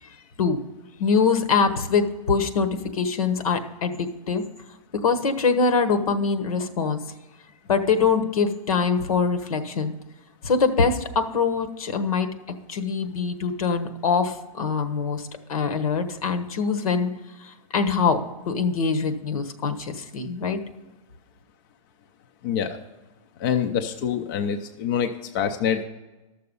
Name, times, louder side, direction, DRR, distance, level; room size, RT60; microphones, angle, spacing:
voice 1, 1.0-4.4 4.9-7.0 7.7-9.9 10.4-12.3 12.7-17.1 17.4-18.2 18.4-20.6, left 5 dB, 75° left, 9 dB, 1.3 m, -23 dB
voice 2, 22.4-22.8 23.4-25.8, left 8 dB, 35° left, 6 dB, 0.6 m, -25 dB
13.0 x 6.8 x 5.4 m, 1.1 s
hypercardioid pair, 160°, 18 cm